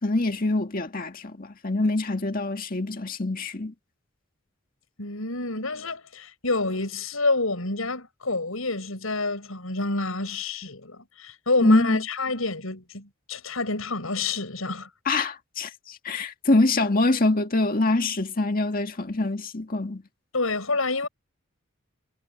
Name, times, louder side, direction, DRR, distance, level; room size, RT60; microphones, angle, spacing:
voice 1, 0.0-3.7 11.6-12.0 15.1-20.0, left 2 dB, 45° left, 2.0 m, -24 dB
voice 2, 5.0-14.9 16.1-16.2 20.3-21.1, left 3 dB, 85° left, 6.5 m, -28 dB
head